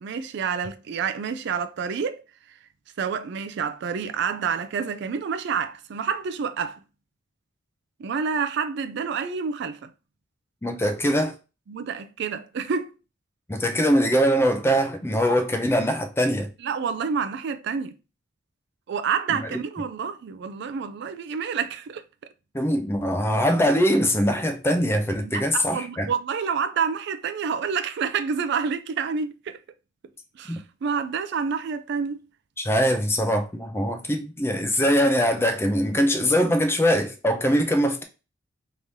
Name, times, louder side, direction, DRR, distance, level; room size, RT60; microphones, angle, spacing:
voice 1, 0.0-2.2 3.0-6.8 8.0-9.9 11.7-12.9 16.6-17.9 18.9-22.0 25.2-29.6 30.4-32.2, right 6 dB, 60° right, 0.4 m, -28 dB
voice 2, 10.6-11.3 13.5-16.5 19.3-19.4 22.5-26.1 30.5-30.6 32.6-38.0, equal, 15° left, 0.5 m, -22 dB
3.6 x 3.1 x 2.6 m
head